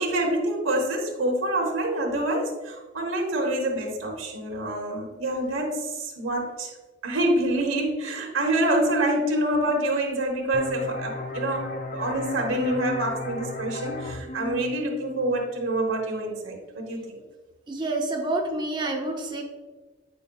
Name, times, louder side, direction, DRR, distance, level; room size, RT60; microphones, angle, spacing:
voice 1, 0.0-6.7 7.0-17.2, right 1 dB, 80° right, 1 dB, 1.1 m, -26 dB
sound 1, 10.5-15.9, left 2 dB, 40° left, 0.5 m, -35 dB
voice 2, 17.7-19.4, right 2 dB, 25° right, 1 dB, 0.7 m, -28 dB
8.7 x 4.9 x 2.3 m, 1.2 s
head